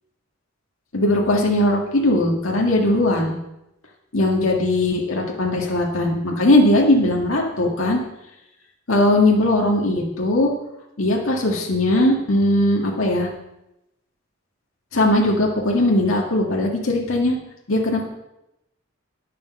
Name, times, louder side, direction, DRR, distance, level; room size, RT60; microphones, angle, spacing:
voice 1, 0.9-3.4 4.1-8.0 8.9-10.5 11.0-13.3 14.9-17.4 17.7-18.1, left 1 dB, 90° left, -1 dB, 1.7 m, -19 dB
9.7 x 6.7 x 6.4 m, 0.89 s
head